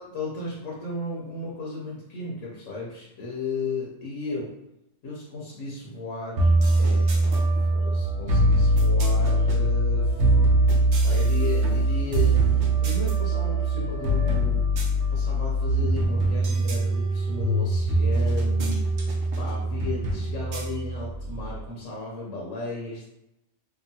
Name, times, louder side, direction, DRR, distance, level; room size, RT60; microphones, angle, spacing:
voice 1, 0.0-4.5 5.0-6.5 6.8-10.3 11.0-14.8 15.1-18.8 19.4-23.0, left 3 dB, 85° left, -4 dB, 1.0 m, -35 dB
sound 1, 6.4-21.6, right 2 dB, 80° right, 1.0 m, -22 dB
2.8 x 2.4 x 2.7 m, 0.88 s
omnidirectional pair, 1.3 m